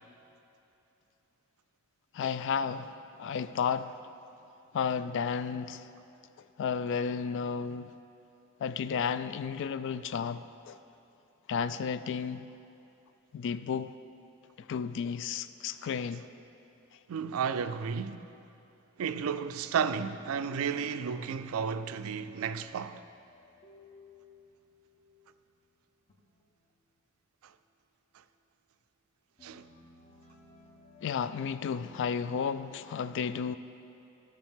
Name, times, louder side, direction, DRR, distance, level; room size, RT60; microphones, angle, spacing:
voice 1, 2.1-4.0 4.7-5.9 6.6-7.9 8.6-10.8 11.5-12.5 13.3-13.9 14.6-16.3 31.0-33.6, left 6 dB, 60° left, 0.3 m, -33 dB
voice 2, 17.1-18.3 19.0-23.0 27.4-27.5 29.4-29.6, right 6 dB, 75° right, 0.4 m, -33 dB
sound 1, 19.6-25.6 26.1-26.7 27.7-27.8 29.4-32.2, left 2 dB, 30° left, 1.0 m, -58 dB
14.0 x 6.5 x 3.6 m
head